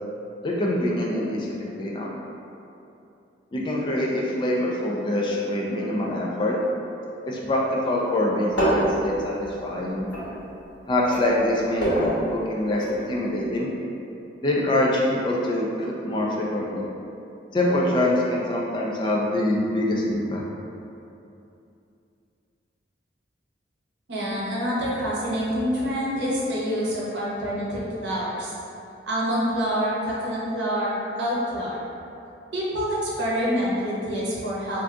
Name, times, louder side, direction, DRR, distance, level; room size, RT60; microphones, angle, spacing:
voice 1, 0.4-1.5 1.7-2.1 3.5-6.5 7.2-10.1 10.9-13.7 14.4-16.8 17.5-20.4, left 1 dB, 25° left, -3 dB, 0.3 m, -25 dB
sound 1, 8.5-10.7 11.0-13.0 13.3-13.4, right 1 dB, 90° left, 1.1 m, -26 dB
voice 2, 24.1-28.5 29.1-31.8 32.5-34.8, equal, 75° right, -7 dB, 0.8 m, -26 dB
2.5 x 2.3 x 3.6 m, 2.7 s
head